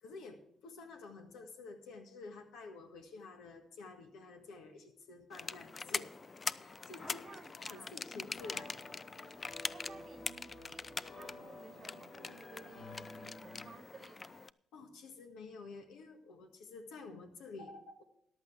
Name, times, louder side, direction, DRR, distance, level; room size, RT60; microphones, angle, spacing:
voice 1, 0.0-6.1 6.6-7.2 7.6-8.8 14.7-18.0, left 3 dB, 90° left, 1.6 m, -50 dB
sound 1, 5.3-14.5, left 4 dB, 30° left, 0.3 m, -43 dB
voice 2, 7.0-7.9 9.7-14.4, right 5 dB, 40° right, 0.6 m, -56 dB
sound 2, 8.4-13.7, left 2 dB, 75° left, 4.2 m, -52 dB
14.0 x 10.5 x 3.4 m
cardioid pair, 90°, 0 cm